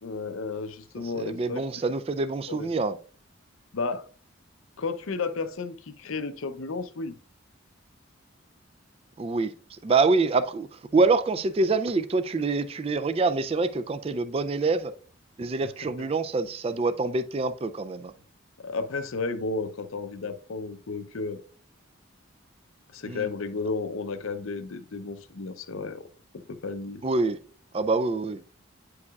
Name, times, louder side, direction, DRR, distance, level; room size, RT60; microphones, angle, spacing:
voice 1, 0.0-1.7 2.5-2.7 3.7-4.1 4.8-7.2 16.0-16.1 18.6-21.4 22.9-26.1 26.3-27.0, left 4 dB, 80° left, 0.6 m, -33 dB
voice 2, 1.1-3.0 9.2-14.9 15.4-18.1 23.0-23.3 27.0-27.4 27.7-28.4, right 3 dB, 30° right, 0.3 m, -26 dB
9.5 x 4.7 x 2.3 m
head